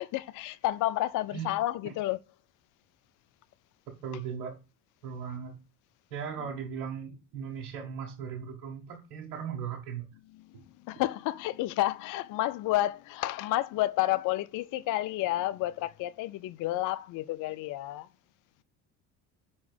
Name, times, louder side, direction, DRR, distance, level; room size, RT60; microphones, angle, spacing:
voice 1, 0.0-2.2 6.4-6.5 10.4-18.1, left 15 dB, 45° left, 0.4 m, -30 dB
voice 2, 4.0-4.6 5.0-5.6 6.1-10.1 10.5-10.6, right 7 dB, 80° right, 1.5 m, -38 dB
5.5 x 4.2 x 6.1 m
hypercardioid pair, 70°, 44 cm